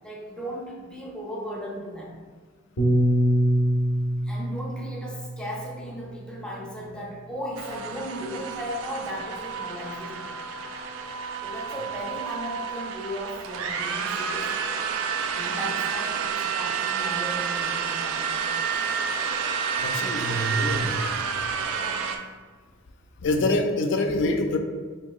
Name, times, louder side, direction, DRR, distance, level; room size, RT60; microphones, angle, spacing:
voice 1, 0.0-2.2 4.2-10.4 11.4-14.6 15.3-18.5 21.7-22.1, equal, 5° left, -3 dB, 0.5 m, -36 dB
Piano, 2.8-7.2, equal, 85° left, 0.8 m, -25 dB
sound 1, 7.6-22.2, right 6 dB, 80° right, 0.3 m, -29 dB
voice 2, 19.8-20.9 23.2-24.6, left 2 dB, 60° left, 5 dB, 0.4 m, -25 dB
3.5 x 2.9 x 2.3 m, 1.5 s
head